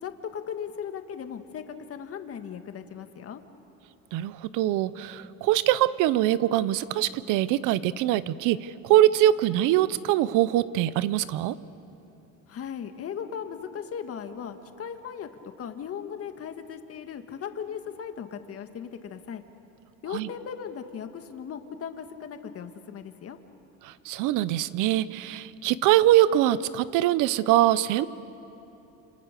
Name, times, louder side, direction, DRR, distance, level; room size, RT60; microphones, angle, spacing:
voice 1, 0.0-3.4 12.5-15.3 15.6-19.4 20.0-23.4, left 7 dB, 50° left, 7 dB, 1.8 m, -37 dB
voice 2, 4.1-11.6 20.1-20.3 23.8-28.1, right 13 dB, 85° right, 16 dB, 0.9 m, -23 dB
28.5 x 28.0 x 6.8 m, 2.9 s
cardioid pair, 115°, 30 cm